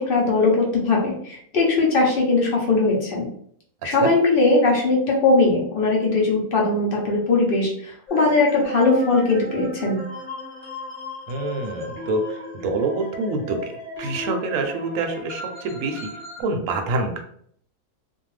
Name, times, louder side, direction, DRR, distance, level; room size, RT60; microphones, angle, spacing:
voice 1, 0.0-3.3 3.8-10.0, left 3 dB, 50° left, -2 dB, 0.8 m, -20 dB
sound 1, 8.1-16.4, left 2 dB, 15° left, 1.2 m, -35 dB
voice 2, 11.3-13.7 14.0-16.1 16.4-17.2, right 3 dB, 70° right, 4 dB, 0.9 m, -26 dB
2.6 x 2.3 x 3.1 m, 0.64 s
omnidirectional pair, 1.6 m